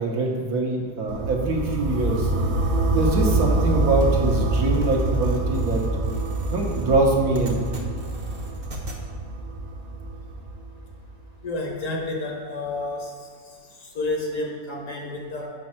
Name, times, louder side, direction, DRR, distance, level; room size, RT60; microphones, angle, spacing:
voice 1, 0.0-2.3 2.9-5.8 6.5-7.6, right 2 dB, 65° right, -1 dB, 1.5 m, -23 dB
sound 1, 1.1-11.0, right 2 dB, 85° right, 0.4 m, -25 dB
sound 2, 4.0-9.0, right 1 dB, 35° right, 0.9 m, -41 dB
voice 2, 11.4-13.1 13.8-15.5, left 2 dB, 55° left, 0 dB, 1.3 m, -30 dB
5.3 x 5.2 x 5.9 m, 2.1 s
omnidirectional pair, 1.7 m